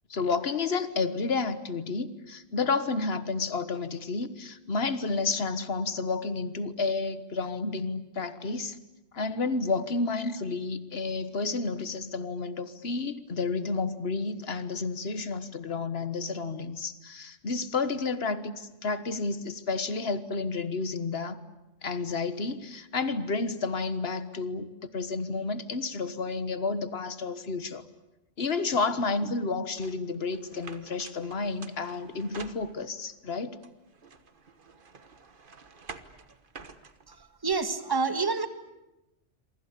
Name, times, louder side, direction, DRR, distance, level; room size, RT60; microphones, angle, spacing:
voice 1, 0.1-8.8 9.1-21.4 21.8-27.8 28.4-33.6, left 4 dB, 55° left, 12 dB, 1.6 m, -31 dB
sound 1, 29.8-33.1 33.6-37.5, right 4 dB, 45° right, 1.4 m, -49 dB
voice 2, 37.1-38.5, right 4 dB, 20° right, 9 dB, 1.6 m, -28 dB
27.5 x 24.0 x 8.4 m, 0.97 s
omnidirectional pair, 1.3 m